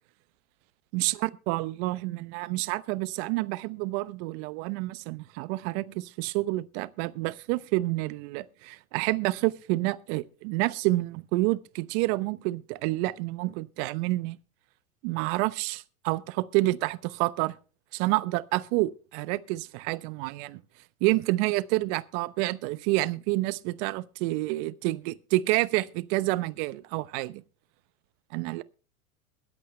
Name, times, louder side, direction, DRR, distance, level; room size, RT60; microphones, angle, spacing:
voice 1, 0.9-14.4 15.0-17.5 17.9-20.6 21.0-27.4 28.3-28.6, right 20 dB, 50° right, 0.9 m, -28 dB
21.5 x 8.6 x 3.3 m
hypercardioid pair, 100°, 43 cm